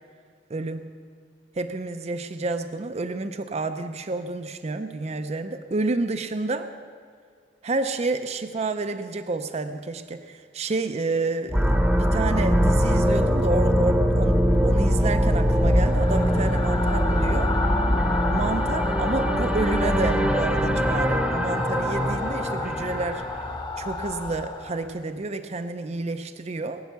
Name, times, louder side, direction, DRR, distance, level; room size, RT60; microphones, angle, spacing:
voice 1, 0.5-0.9 1.5-6.7 7.6-17.5 18.3-23.3 23.8-26.8, right 3 dB, 35° right, 9 dB, 0.5 m, -29 dB
sound 1, 11.5-23.4, equal, 5° right, 0.9 m, -22 dB
sound 2, 15.0-25.0, left 2 dB, 25° left, 1.0 m, -30 dB
19.5 x 9.4 x 6.9 m, 2.1 s
head